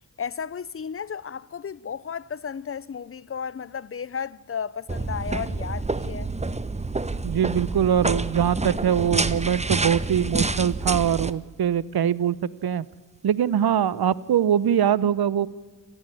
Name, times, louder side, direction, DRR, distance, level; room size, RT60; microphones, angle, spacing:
voice 1, 0.2-6.3, left 7 dB, 30° left, 0.8 m, -34 dB
sound 1, 4.9-11.3, right 3 dB, 15° right, 1.0 m, -28 dB
voice 2, 7.2-12.4 12.6-12.8 13.2-15.5, right 9 dB, 65° right, 0.9 m, -22 dB
26.0 x 14.5 x 9.9 m
supercardioid pair, 45°, 41 cm